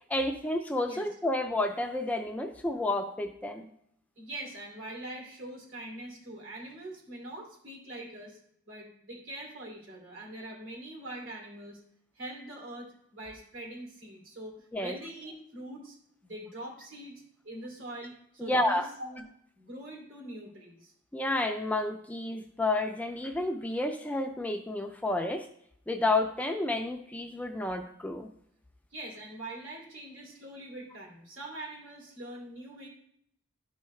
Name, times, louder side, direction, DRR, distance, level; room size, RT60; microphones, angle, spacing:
voice 1, 0.1-3.7 14.7-14.9 18.4-18.9 21.1-25.5 25.9-28.3, left 2 dB, 5° left, 5 dB, 0.4 m, -30 dB
voice 2, 4.2-8.4 8.7-11.8 12.1-16.0 16.2-19.2 19.6-20.9 28.9-32.9, right 1 dB, 65° right, 0 dB, 2.8 m, -43 dB
12.5 x 4.7 x 3.2 m, 0.70 s
head